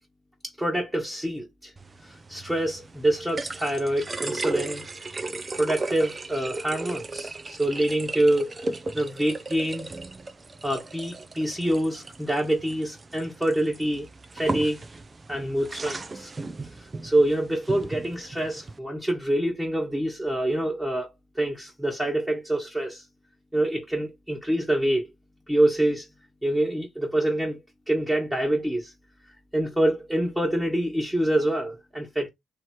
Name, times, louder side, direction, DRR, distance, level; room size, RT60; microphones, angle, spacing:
voice 1, 0.4-1.7 2.0-4.8 5.5-8.5 8.9-9.9 10.6-14.1 14.3-14.8 15.3-16.3 16.8-21.1 21.3-23.0 23.5-25.1 25.5-26.1 26.4-27.6 27.9-28.9 29.5-32.3, right 1 dB, 10° right, 1.3 m, -26 dB
sound 1, 1.8-18.8, right 3 dB, 30° right, 0.5 m, -36 dB
3.1 x 3.0 x 4.5 m
cardioid pair, 90°, 0 cm